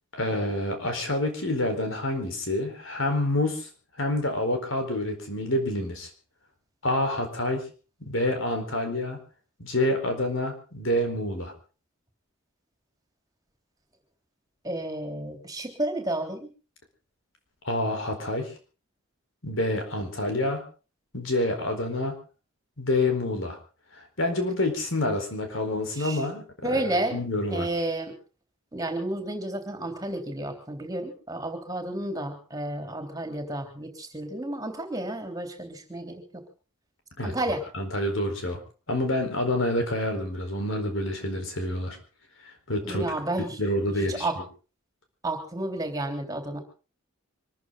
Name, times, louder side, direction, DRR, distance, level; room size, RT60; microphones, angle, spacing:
voice 1, 0.1-3.7 4.0-6.1 6.8-7.6 8.0-9.2 9.6-11.5 17.6-18.5 19.4-20.6 21.1-22.2 22.8-23.6 23.9-26.4 26.7-27.7 37.2-37.3 37.7-38.6 38.9-42.0 42.4-43.1 43.6-44.3, left 1 dB, 65° left, 5 dB, 4.4 m, -27 dB
voice 2, 14.6-16.5 25.9-26.3 26.6-27.2 27.5-28.2 28.7-36.2 37.2-37.6 42.8-43.7 44.1-44.4 45.2-46.6, right 1 dB, 15° right, 4 dB, 3.4 m, -31 dB
25.5 x 14.0 x 3.9 m, 0.36 s
head